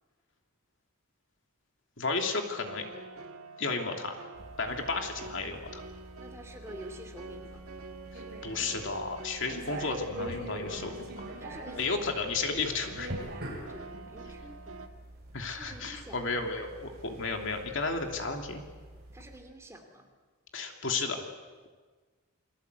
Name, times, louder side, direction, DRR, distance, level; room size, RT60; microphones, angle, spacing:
voice 1, 2.0-2.8 3.6-4.2 4.6-5.8 8.1-11.1 11.7-13.1 15.3-18.6 20.5-21.3, left 3 dB, 55° left, 3 dB, 2.9 m, -33 dB
sound 1, 2.4-14.9, right 3 dB, 75° right, 1.9 m, -47 dB
sound 2, 4.3-19.4, right 1 dB, 45° right, 6.4 m, -45 dB
voice 2, 6.2-7.6 11.4-12.0 13.7-14.8 15.6-16.3 19.1-20.1, equal, 10° right, 4 dB, 2.8 m, -48 dB
29.0 x 21.5 x 8.2 m, 1.4 s
head